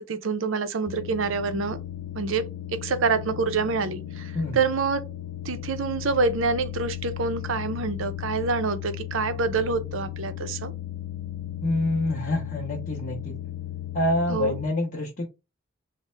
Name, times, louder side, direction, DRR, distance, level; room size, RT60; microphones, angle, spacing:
voice 1, 0.0-1.8 2.1-2.4 2.8-5.0 5.4-10.7 14.3-14.6, right 4 dB, 70° right, 0.5 m, -26 dB
sound 1, 0.9-14.7, left 12 dB, 70° left, 0.3 m, -36 dB
voice 2, 11.6-13.4 13.9-15.3, left 1 dB, 40° left, 0.6 m, -26 dB
3.3 x 2.1 x 4.3 m
head